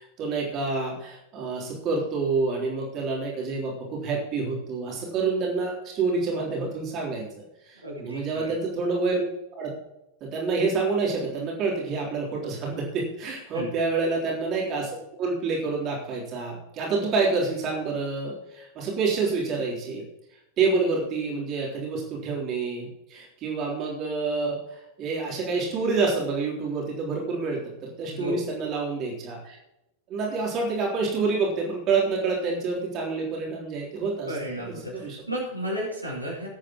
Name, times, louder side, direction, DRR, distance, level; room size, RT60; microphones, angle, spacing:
voice 1, 0.0-7.3 7.7-9.2 9.6-9.7 10.2-14.9 15.2-20.0 20.6-29.6 30.1-34.3 34.7-35.2, right 4 dB, 35° right, -3 dB, 3.7 m, -28 dB
voice 2, 7.8-8.6 13.5-13.8 28.1-28.5 34.2-36.5, right 1 dB, 85° right, -4 dB, 5.2 m, -33 dB
19.0 x 8.8 x 3.1 m, 0.89 s
figure-of-eight pair, 90°, 0 cm